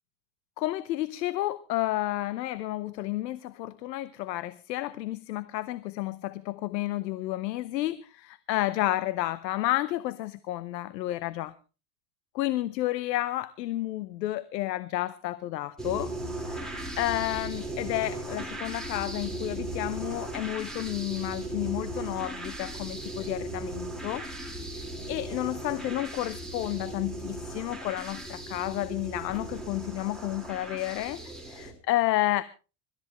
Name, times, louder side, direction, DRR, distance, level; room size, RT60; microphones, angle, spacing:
voice 1, 0.6-11.5 12.3-16.1 16.5-24.3 24.7-24.8 25.1-32.4, left 15 dB, 80° left, 17 dB, 0.9 m, -31 dB
sound 1, 15.8-31.7, right 1 dB, ahead, 4.6 m, -37 dB
25.5 x 13.5 x 3.1 m, 0.33 s
hypercardioid pair, 95°, 49 cm